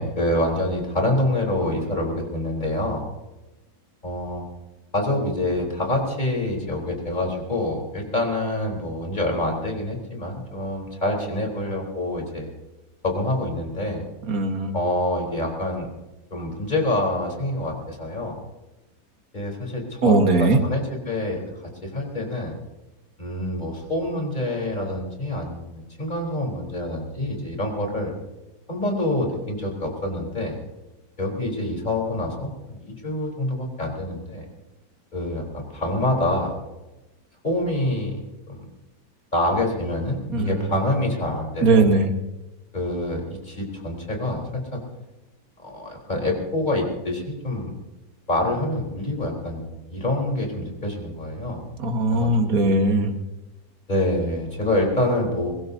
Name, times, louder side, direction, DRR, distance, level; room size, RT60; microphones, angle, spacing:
voice 1, 0.0-3.1 4.0-4.4 4.9-12.5 13.0-14.1 14.7-15.9 16.3-18.4 19.3-21.4 21.8-22.6 23.2-28.1 28.7-30.6 31.2-34.4 35.1-36.5 37.4-38.6 39.3-41.9 42.7-44.8 45.6-47.7 48.3-51.6 52.1-52.3 52.6-52.8 53.9-55.5, left 1 dB, 25° left, 0 dB, 4.2 m, -26 dB
voice 2, 14.3-14.7 20.0-20.6 40.3-40.7 41.6-42.1 51.8-53.1, right 3 dB, 55° right, 5 dB, 2.0 m, -19 dB
23.0 x 20.5 x 2.8 m, 1.1 s
omnidirectional pair, 1.9 m